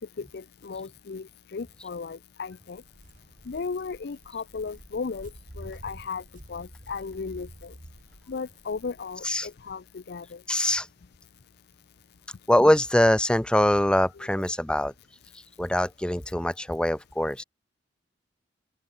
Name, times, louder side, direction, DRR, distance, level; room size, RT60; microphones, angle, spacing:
voice 1, 0.2-2.8 3.5-7.7 8.3-10.4 14.2-14.3, left 5 dB, 60° left, 0.5 m, -36 dB
Walk footsteps, 2.7-9.7, equal, 45° right, 3.5 m, -49 dB
voice 2, 10.5-10.9 12.5-14.9 15.6-17.4, left 1 dB, 5° left, 0.5 m, -23 dB
open air
head